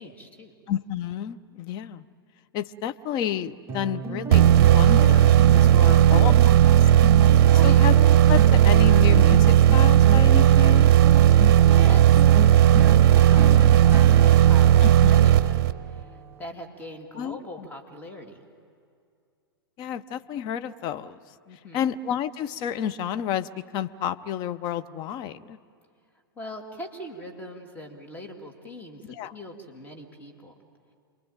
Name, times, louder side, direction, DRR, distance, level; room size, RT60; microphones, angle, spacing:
voice 1, 0.0-0.5 5.7-6.3 7.5-7.8 11.5-12.2 12.7-18.4 21.4-21.9 26.3-29.0 29.3-30.6, equal, 15° left, 2 dB, 3.1 m, -41 dB
voice 2, 0.7-2.0 2.5-6.3 7.6-8.0 8.3-10.9 14.8-15.3 17.2-17.7 19.8-21.2 21.7-25.6 29.1-29.3, left 10 dB, 35° left, 11 dB, 0.9 m, -30 dB
sound 1, 3.7-16.4, right 2 dB, 20° right, 0.9 m, -34 dB
sound 2, 4.3-16.0, right 11 dB, 50° right, 0.8 m, -15 dB
28.5 x 22.5 x 9.1 m, 2.3 s
figure-of-eight pair, 105°, 13 cm